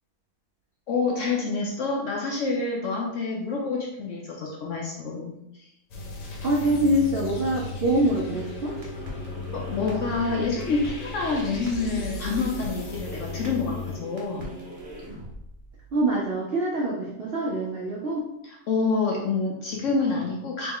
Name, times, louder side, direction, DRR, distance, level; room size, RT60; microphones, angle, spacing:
voice 1, 0.9-5.7 9.5-14.5 18.4-20.7, left 4 dB, 65° left, -2 dB, 0.8 m, -27 dB
sound 1, 5.9-14.0, left 4 dB, 80° left, 1.3 m, -36 dB
voice 2, 6.4-8.7 15.9-18.3, right 1 dB, 65° right, -3 dB, 0.5 m, -24 dB
sound 2, 8.3-16.3, right 2 dB, 40° right, 0.8 m, -41 dB
3.1 x 3.0 x 3.6 m, 0.81 s
omnidirectional pair, 1.7 m